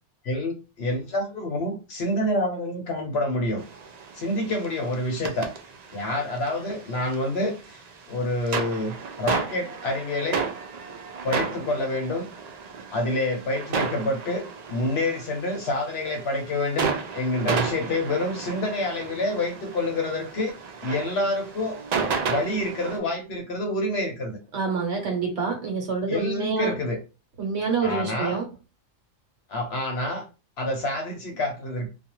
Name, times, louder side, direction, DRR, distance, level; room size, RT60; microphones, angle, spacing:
voice 1, 0.2-3.6 4.1-5.5 5.9-7.5 8.1-10.4 11.2-12.3 12.9-14.4 14.7-20.5 20.8-21.8 22.3-24.4 26.1-27.0 27.8-28.4 29.5-30.2 30.6-31.9, left 1 dB, 60° left, 4 dB, 0.8 m, -27 dB
sound 1, 3.6-23.0, right 5 dB, 90° right, 0.3 m, -33 dB
voice 2, 24.5-26.7 27.4-28.4, right 5 dB, 60° right, 2 dB, 1.0 m, -27 dB
2.4 x 2.2 x 2.9 m, 0.30 s
omnidirectional pair, 1.3 m